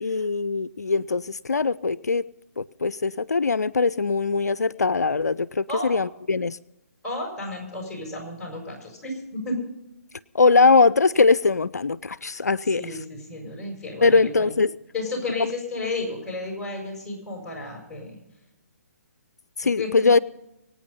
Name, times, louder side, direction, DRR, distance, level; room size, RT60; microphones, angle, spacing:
voice 1, 0.0-2.2 2.6-6.6 10.3-12.8 14.0-14.7 19.6-20.2, left 4 dB, 85° left, 19 dB, 0.4 m, -21 dB
voice 2, 7.0-9.6 12.7-14.5 14.9-18.2 19.8-20.1, left 2 dB, 10° left, 0 dB, 6.3 m, -32 dB
24.0 x 9.1 x 5.5 m, 0.92 s
figure-of-eight pair, 140°, 9 cm